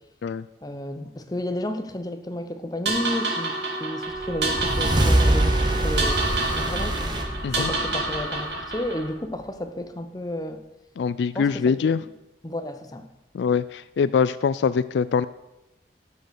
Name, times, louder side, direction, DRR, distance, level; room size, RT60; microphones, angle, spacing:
voice 1, 0.6-7.0 7.5-10.6 11.3-12.1 12.4-13.1, left 1 dB, 20° left, 8 dB, 0.8 m, -32 dB
Wind instrument woodwind instrument, 2.9-8.0, right 4 dB, 55° right, 1.5 m, -36 dB
sound 1, 2.9-9.1, right 2 dB, 75° right, 2.8 m, -29 dB
sound 2, 4.2-8.7, right 1 dB, 25° right, 1.2 m, -24 dB
voice 2, 11.0-12.0 13.3-15.3, left 6 dB, 75° left, 16 dB, 0.3 m, -23 dB
12.5 x 6.6 x 6.4 m, 0.93 s
head